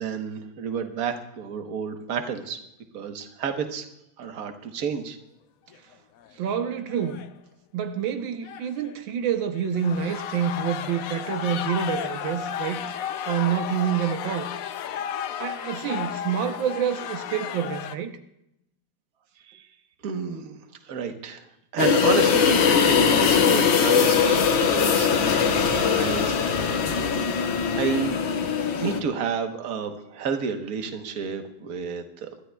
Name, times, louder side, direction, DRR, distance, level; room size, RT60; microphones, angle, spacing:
voice 1, 0.0-2.6 2.9-3.9 4.2-5.2 19.5-19.7 20.0-20.6 20.9-21.4 21.7-27.1 27.7-28.2 28.8-32.3, right 6 dB, 55° right, 6 dB, 1.5 m, -30 dB
sound 1, 5.7-5.9 6.2-6.3 6.9-7.3 8.4-9.0 9.6-18.0, left 9 dB, 70° left, 0.8 m, -33 dB
voice 2, 6.4-7.2 7.7-12.8 13.3-14.5 15.4-18.1, right 8 dB, 85° right, 6 dB, 1.6 m, -27 dB
sound 2, 21.8-29.0, left 6 dB, 85° left, 1.8 m, -21 dB
26.0 x 13.0 x 2.3 m, 0.82 s
omnidirectional pair, 2.0 m